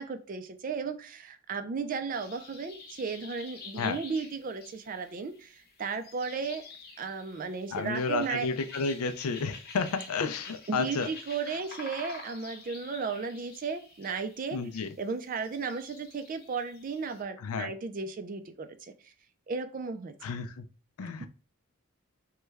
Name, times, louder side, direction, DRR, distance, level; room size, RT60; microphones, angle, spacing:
voice 1, 0.0-6.6 7.0-8.5 10.7-14.6 15.0-19.1 19.5-20.1, right 5 dB, 40° right, 7 dB, 0.3 m, -35 dB
sound 1, 2.1-17.2, left 4 dB, 45° left, 0.8 m, -49 dB
voice 2, 7.7-11.1 11.5-11.6 14.5-14.9 17.4-17.7 20.2-20.7 21.0-21.3, left 5 dB, 80° left, 9 dB, 0.4 m, -31 dB
3.1 x 2.2 x 3.3 m, 0.36 s
head